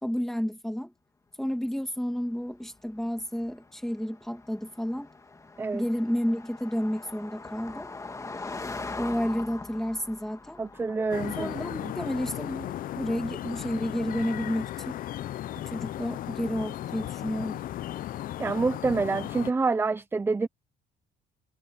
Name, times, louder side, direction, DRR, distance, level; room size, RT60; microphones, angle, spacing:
voice 1, 0.0-0.9 1.4-5.1 5.7-7.9 9.0-10.6 11.4-15.0 15.7-17.6, equal, ahead, 2.3 m, -31 dB
Car passing by, 2.1-15.8, left 3 dB, 20° left, 1.8 m, -44 dB
voice 2, 10.6-11.5 11.8-11.9 18.4-20.5, right 3 dB, 15° right, 0.4 m, -27 dB
sound 1, 11.1-19.5, left 13 dB, 55° left, 0.5 m, -36 dB
cardioid pair, 110°, 17 cm